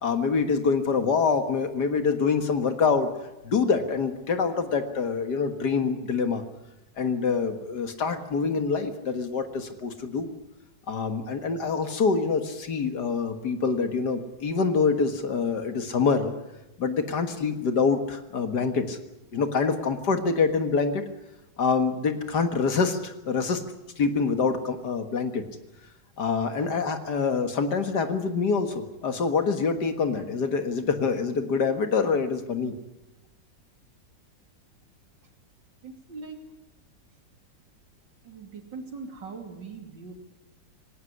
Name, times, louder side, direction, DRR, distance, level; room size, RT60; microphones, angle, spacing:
voice 1, 0.0-3.1 3.4-6.4 7.0-10.3 10.9-16.3 16.8-19.0 19.3-21.0 21.6-23.6 24.0-25.5 26.2-32.7, left 5 dB, 65° left, 8 dB, 2.2 m, -25 dB
voice 2, 35.8-36.5 38.2-40.3, right 4 dB, 75° right, 4 dB, 3.5 m, -41 dB
19.5 x 18.0 x 9.7 m, 0.99 s
omnidirectional pair, 2.0 m